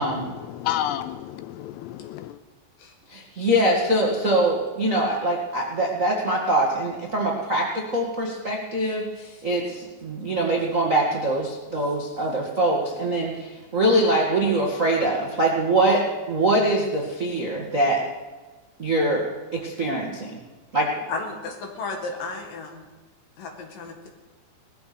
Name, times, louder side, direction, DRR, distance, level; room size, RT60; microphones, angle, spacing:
voice 1, 0.0-2.4, left 12 dB, 80° left, 12 dB, 2.6 m, -31 dB
voice 2, 3.1-18.0 18.8-19.2 19.5-20.4 20.7-20.9, right 1 dB, 65° right, -2 dB, 0.7 m, -23 dB
voice 3, 21.1-22.8 23.4-24.1, left 3 dB, 60° left, 2 dB, 3.3 m, -33 dB
19.0 x 14.0 x 5.2 m, 1.2 s
omnidirectional pair, 5.0 m